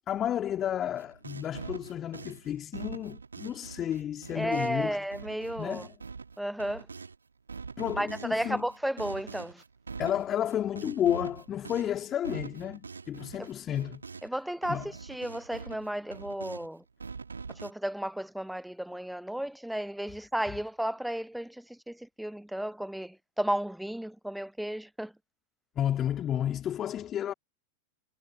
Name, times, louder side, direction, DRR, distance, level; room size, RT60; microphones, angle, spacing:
voice 1, 0.1-5.1 5.6-5.9 7.8-8.7 10.0-14.0 14.7-14.9 25.7-27.3, left 10 dB, 30° left, 3.5 m, -32 dB
sound 1, 1.0-7.2 7.5-14.4 14.6-16.7 17.0-17.7, right 5 dB, 75° right, 2.2 m, -44 dB
voice 2, 4.3-5.8 6.4-6.9 7.9-9.6 13.4-13.5 14.2-16.8 17.5-25.1, right 1 dB, ahead, 0.7 m, -33 dB
figure-of-eight pair, 90°, 0 cm